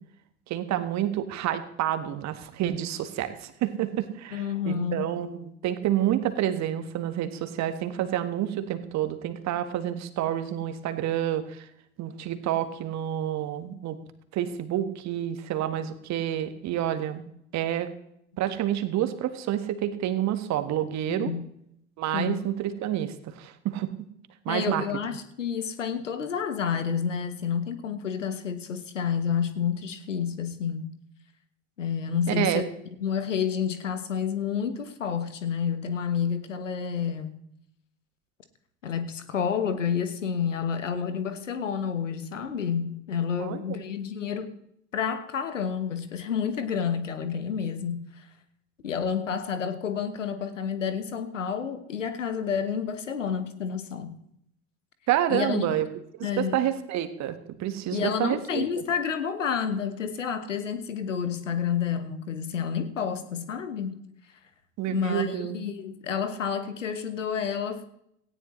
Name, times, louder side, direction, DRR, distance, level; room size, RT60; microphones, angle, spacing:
voice 1, 0.5-11.7 12.0-14.0 14.3-17.3 17.5-17.9 18.4-21.3 22.0-23.9 24.4-24.8 32.3-32.6 43.4-43.8 55.1-55.9 56.4-58.7 64.8-65.6, right 11 dB, 45° right, 10 dB, 1.5 m, -28 dB
voice 2, 4.3-5.1 21.1-21.4 22.1-22.4 24.5-30.9 31.8-32.7 33.0-37.3 38.8-44.5 44.9-48.3 48.8-54.1 55.3-55.7 56.2-56.6 57.9-63.9 64.9-67.9, left 7 dB, 80° left, 11 dB, 1.3 m, -29 dB
17.5 x 16.0 x 3.2 m, 0.74 s
figure-of-eight pair, 65°, 37 cm